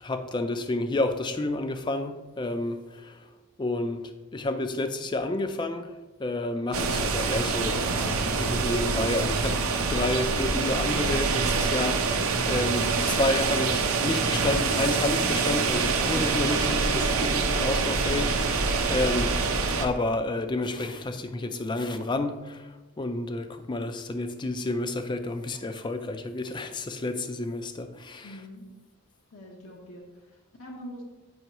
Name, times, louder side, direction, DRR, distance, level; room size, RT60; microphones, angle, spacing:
voice 1, 0.0-3.2 3.6-5.9 6.2-7.9 8.2-19.4 19.8-28.4, left 2 dB, 20° left, 0.4 m, -30 dB
sound 1, 6.7-19.9, right 4 dB, 85° right, 0.6 m, -25 dB
voice 2, 28.2-28.7 29.3-31.0, equal, 75° left, 0.9 m, -44 dB
7.7 x 5.5 x 3.0 m
head